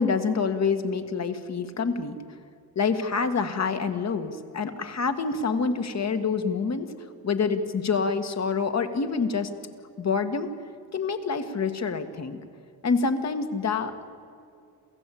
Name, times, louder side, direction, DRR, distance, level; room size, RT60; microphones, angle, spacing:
voice 1, 0.0-2.2 2.8-6.9 7.2-9.5 10.0-10.5 10.9-12.4 12.8-14.0, left 5 dB, 45° left, 8 dB, 1.8 m, -27 dB
28.0 x 15.0 x 8.5 m, 2.4 s
cardioid pair, 115°, 38 cm